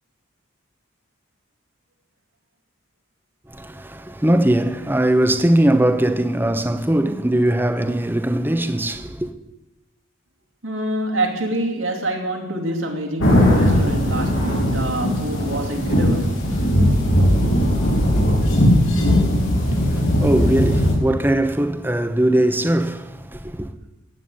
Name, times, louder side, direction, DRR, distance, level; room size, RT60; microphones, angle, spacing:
voice 1, 3.5-9.3 19.8-23.0 23.3-23.7, right 1 dB, 10° right, 0.9 m, -20 dB
voice 2, 10.6-16.4, right 1 dB, 85° right, 2.8 m, -26 dB
sound 1, 13.2-20.9, equal, 90° left, 5.8 m, -18 dB
15.5 x 9.2 x 8.6 m
head